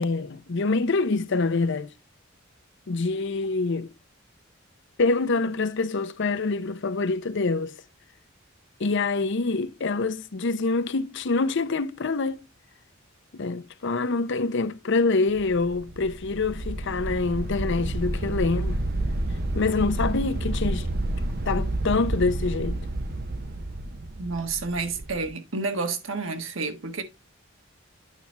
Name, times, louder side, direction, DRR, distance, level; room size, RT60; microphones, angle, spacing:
voice 1, 0.0-1.9 2.9-3.9 5.0-7.8 8.8-12.4 13.3-18.8 19.5-20.9 21.5-22.8, left 3 dB, 60° left, 0.7 m, -25 dB
sound 1, 15.3-25.3, right 1 dB, 50° right, 0.9 m, -30 dB
voice 2, 24.2-27.0, right 4 dB, 75° right, 1.5 m, -30 dB
9.0 x 5.9 x 3.3 m
head